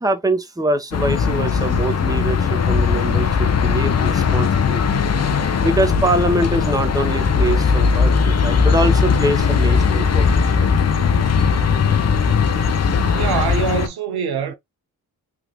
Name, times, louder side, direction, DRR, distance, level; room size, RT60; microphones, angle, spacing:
voice 1, 0.0-4.8 5.6-10.7, right 1 dB, 10° right, 0.9 m, -23 dB
sound 1, 0.9-13.9, left 5 dB, 40° left, 0.7 m, -18 dB
sound 2, 7.9-13.4, left 6 dB, 65° left, 1.2 m, -34 dB
voice 2, 13.1-14.5, right 7 dB, 70° right, 0.7 m, -24 dB
3.5 x 2.4 x 3.0 m
cardioid pair, 55°, 39 cm